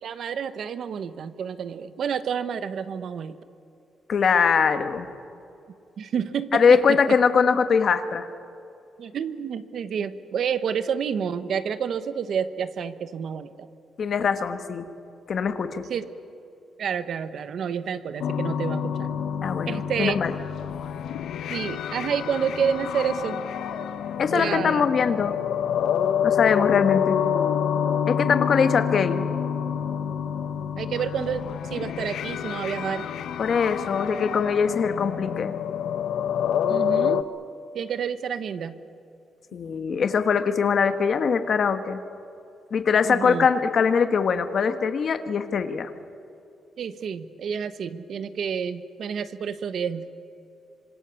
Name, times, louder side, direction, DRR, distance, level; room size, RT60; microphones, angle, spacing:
voice 1, 0.0-3.4 6.0-7.0 9.0-13.7 15.9-16.0 16.8-19.1 19.7-20.2 21.5-23.4 24.3-24.9 30.8-33.1 36.7-37.3 37.7-38.8 43.0-43.5 46.8-50.1, right 7 dB, 55° right, 12 dB, 1.1 m, -29 dB
voice 2, 4.1-5.1 6.5-8.2 14.0-14.9 15.3-15.8 19.4-20.3 24.2-25.4 26.2-27.2 28.1-29.2 33.4-35.5 39.5-42.0 42.7-45.9, left 6 dB, 45° left, 8 dB, 1.4 m, -22 dB
sound 1, 18.2-37.2, left 8 dB, 80° left, 0.9 m, -27 dB
26.0 x 25.5 x 7.1 m, 2.6 s
wide cardioid pair, 180°, 0 cm